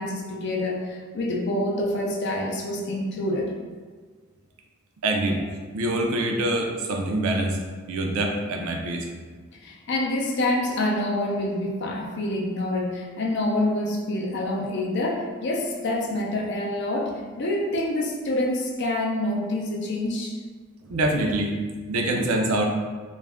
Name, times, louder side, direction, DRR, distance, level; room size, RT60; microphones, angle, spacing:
voice 1, 0.0-3.5 9.6-20.4 22.2-22.3, left 1 dB, 50° left, -1 dB, 0.4 m, -27 dB
voice 2, 5.0-5.4 5.7-7.6 7.9-9.1 20.9-21.5 21.9-22.6, right 1 dB, 75° right, 2 dB, 0.4 m, -25 dB
2.4 x 2.1 x 3.4 m, 1.5 s
head